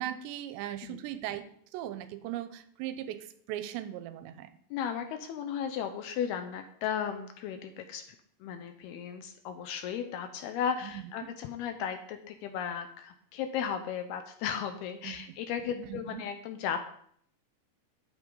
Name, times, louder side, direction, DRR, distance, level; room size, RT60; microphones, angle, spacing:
voice 1, 0.0-4.5 10.8-11.0 15.0-15.2 15.8-16.2, right 12 dB, 90° right, 11 dB, 3.0 m, -38 dB
voice 2, 4.7-8.0 8.4-16.9, left 8 dB, 80° left, 7 dB, 2.4 m, -35 dB
12.5 x 8.6 x 3.8 m, 0.64 s
omnidirectional pair, 5.1 m